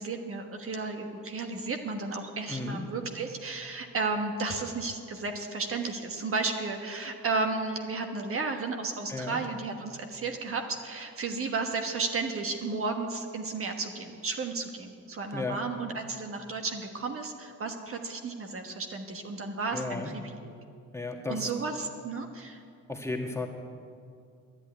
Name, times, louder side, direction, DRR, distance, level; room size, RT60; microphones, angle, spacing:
voice 1, 0.0-20.5 21.3-22.6, right 3 dB, 40° right, 4 dB, 1.4 m, -33 dB
voice 2, 2.5-2.8 9.1-9.4 15.3-15.6 19.7-20.1 20.9-21.5 22.9-23.5, left 3 dB, 10° left, 1 dB, 1.8 m, -34 dB
11.0 x 10.5 x 9.6 m, 2.3 s
cardioid pair, 100°, 33 cm